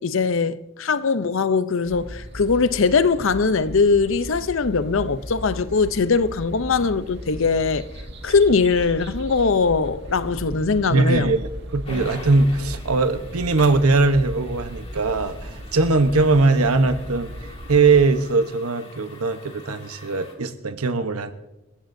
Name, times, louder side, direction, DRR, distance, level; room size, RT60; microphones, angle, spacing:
voice 1, 0.0-7.9 8.2-11.3, left 4 dB, 65° left, 0.6 m, -21 dB
sound 1, 1.8-18.2, equal, 50° right, 1.9 m, -36 dB
voice 2, 10.9-17.3 17.7-21.3, right 3 dB, 90° right, 1.0 m, -20 dB
sound 2, 11.8-20.4, left 2 dB, 25° left, 2.0 m, -44 dB
27.5 x 14.5 x 2.7 m
head